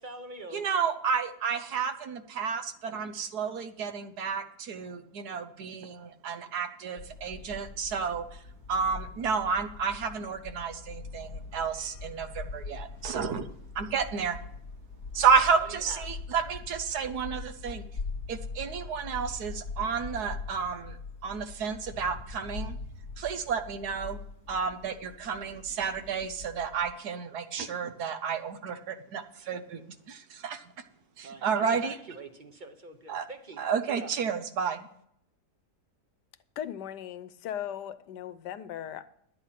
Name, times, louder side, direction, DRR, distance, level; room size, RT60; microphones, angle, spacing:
voice 1, 0.0-0.7 5.3-5.4 15.6-16.2 31.2-34.1, right 3 dB, 35° right, 1.0 m, -45 dB
voice 2, 0.5-8.2 8.7-13.5 13.7-14.4 15.1-17.9 18.3-21.0 21.2-22.8 23.2-24.2 24.5-29.8 30.1-30.6 31.2-31.9 33.1-33.2 33.6-34.9, right 6 dB, 70° right, 1.4 m, -31 dB
sound 1, 7.0-26.9, left 4 dB, 45° left, 1.2 m, -42 dB
voice 3, 36.6-39.0, left 10 dB, 90° left, 1.3 m, -38 dB
11.0 x 8.7 x 5.7 m
omnidirectional pair, 1.8 m